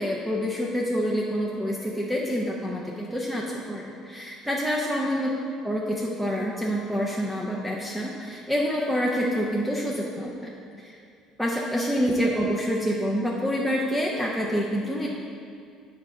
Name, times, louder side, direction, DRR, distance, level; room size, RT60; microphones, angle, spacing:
voice 1, 0.0-5.3 5.6-10.5 10.8-11.0 11.4-15.1, equal, ahead, -3 dB, 0.6 m, -27 dB
7.3 x 3.8 x 5.4 m, 2.3 s
cardioid pair, 110°, 0 cm